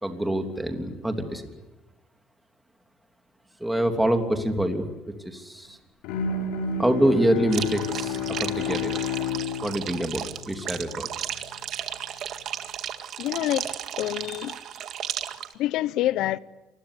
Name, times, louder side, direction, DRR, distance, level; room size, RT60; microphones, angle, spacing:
voice 1, 0.0-1.5 3.6-4.9 5.2-5.8 6.8-8.9 9.6-11.5, right 1 dB, 5° right, 3.1 m, -26 dB
Bowed string instrument, 6.0-11.1, left 5 dB, 80° left, 6.6 m, -31 dB
sound 1, 7.5-15.5, right 10 dB, 45° right, 2.0 m, -34 dB
voice 2, 13.2-13.7 14.0-14.6 15.5-16.4, left 14 dB, 60° left, 0.9 m, -26 dB
27.5 x 21.5 x 10.0 m
cardioid pair, 135°, 0 cm